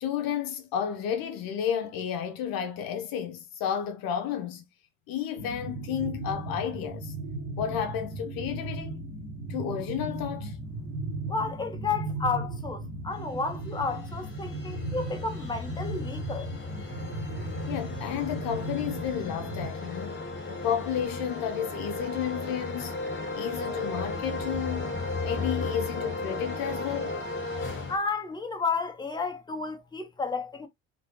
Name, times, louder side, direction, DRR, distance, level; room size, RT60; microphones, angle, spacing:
voice 1, 0.0-4.7 5.1-7.1 7.6-9.0 9.5-10.6 17.7-20.2 20.5-23.0 23.4-24.9 25.2-27.2, left 9 dB, 60° left, 0.8 m, -32 dB
sound 1, 5.4-19.7, right 2 dB, 85° right, 1.3 m, -36 dB
voice 2, 11.3-16.6 27.9-30.7, left 4 dB, 10° left, 0.8 m, -32 dB
sound 2, 13.3-28.0, left 3 dB, 30° left, 1.4 m, -35 dB
3.0 x 2.9 x 3.0 m
hypercardioid pair, 55°, 40 cm